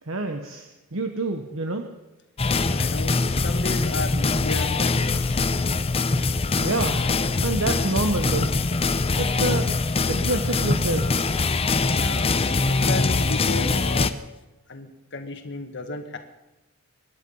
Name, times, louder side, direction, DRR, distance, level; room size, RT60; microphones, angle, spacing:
voice 1, 0.0-1.9 6.6-7.0 7.4-8.5 9.2-9.7 10.1-11.3, right 2 dB, 70° right, 6 dB, 1.1 m, -27 dB
sound 1, 2.4-14.1, left 3 dB, 25° left, 0.6 m, -23 dB
voice 2, 2.7-5.4 11.9-12.3 12.6-14.1 14.7-16.2, left 3 dB, 55° left, 6 dB, 1.7 m, -33 dB
24.0 x 11.0 x 5.5 m, 1.0 s
head